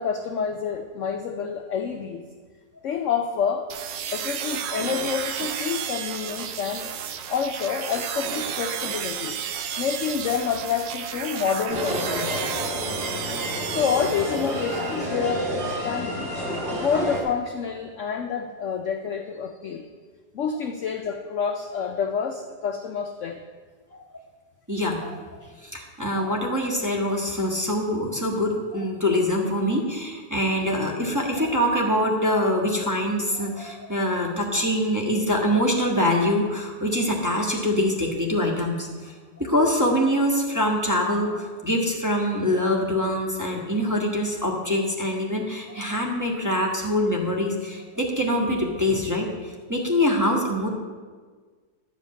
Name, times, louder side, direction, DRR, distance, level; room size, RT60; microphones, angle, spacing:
voice 1, 0.0-2.3 2.8-3.7 4.1-6.9 7.3-9.4 9.8-12.5 13.7-16.3 16.7-19.9 20.3-23.4, left 6 dB, 70° left, 6 dB, 0.7 m, -28 dB
sound 1, 3.7-14.9, right 8 dB, 75° right, 1.4 m, -32 dB
sound 2, 11.7-17.2, equal, 30° right, 2.3 m, -29 dB
voice 2, 24.7-50.7, left 1 dB, 10° right, -2 dB, 1.3 m, -24 dB
11.0 x 5.2 x 8.4 m, 1.5 s
omnidirectional pair, 2.0 m